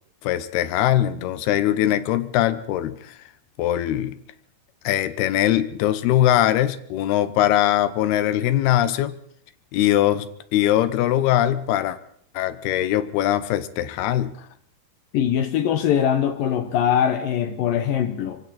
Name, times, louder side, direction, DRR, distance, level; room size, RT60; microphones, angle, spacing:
voice 1, 0.2-3.2 3.6-4.2 4.8-9.2 9.7-12.0 12.3-14.5, left 12 dB, 85° left, 3.0 m, -21 dB
voice 2, 15.1-18.4, left 9 dB, 70° left, 2.6 m, -22 dB
25.0 x 24.5 x 4.3 m
omnidirectional pair, 4.4 m